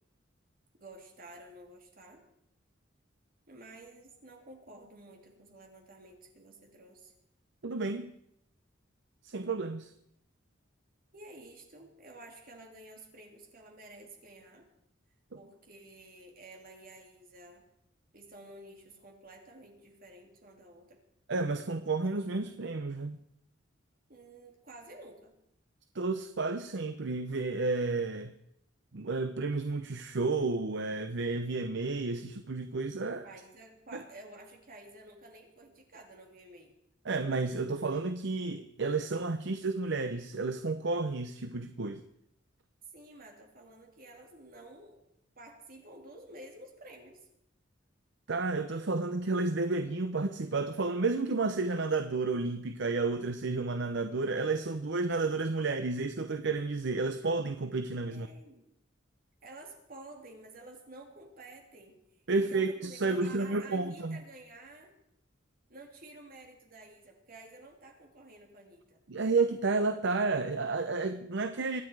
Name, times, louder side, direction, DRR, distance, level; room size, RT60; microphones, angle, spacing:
voice 1, 0.7-2.2 3.5-7.1 11.1-14.7 15.3-17.6 18.1-21.0 24.1-25.3 33.2-36.7 42.9-45.0 45.3-47.3 58.1-58.6 59.4-64.9 65.7-69.0, right 2 dB, 50° right, 2 dB, 3.2 m, -51 dB
voice 2, 7.6-8.1 9.2-9.9 21.3-23.2 25.9-28.3 28.9-33.3 37.0-42.0 48.3-58.3 62.3-64.2 69.1-71.8, right 3 dB, 65° right, 9 dB, 0.8 m, -31 dB
24.5 x 10.0 x 4.8 m, 0.75 s
head